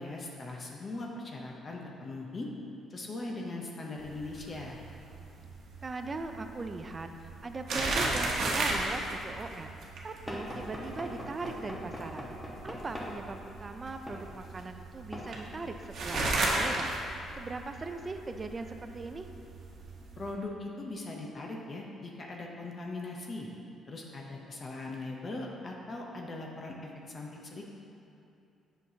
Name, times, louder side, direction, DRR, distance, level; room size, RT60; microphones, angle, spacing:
voice 1, 0.0-2.5 2.9-4.8 20.2-23.5 23.9-27.6, left 2 dB, 35° left, -1 dB, 0.7 m, -40 dB
sound 1, 4.0-20.3, right 2 dB, 65° right, 1.0 m, -35 dB
voice 2, 5.8-9.7 10.0-12.3 12.6-19.3, right 3 dB, 30° right, 7 dB, 0.4 m, -40 dB
Knock / Wood, 10.3-13.2 14.1-14.2 15.1-15.3 16.1-16.3, left 1 dB, 10° left, 1.2 m, -40 dB
8.1 x 5.8 x 2.8 m, 2.7 s
cardioid pair, 105°, 0 cm